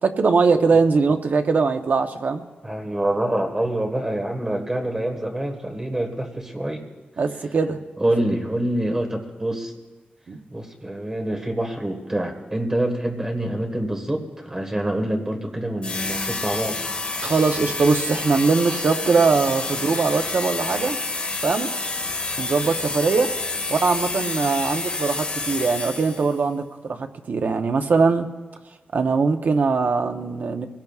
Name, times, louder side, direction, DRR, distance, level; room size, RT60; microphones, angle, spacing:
voice 1, 0.0-2.4 7.2-7.8 10.3-10.4 17.2-21.0 21.4-21.7 22.4-23.3 23.7-28.3 28.9-30.7, right 4 dB, 55° right, 6 dB, 0.8 m, -21 dB
voice 2, 2.6-6.8 8.0-9.7 10.5-16.8, right 1 dB, 15° right, 3 dB, 1.5 m, -26 dB
sound 1, 15.8-26.4, left 3 dB, 35° left, 1.5 m, -29 dB
23.0 x 17.5 x 2.4 m, 1.2 s
wide cardioid pair, 180°, 3 cm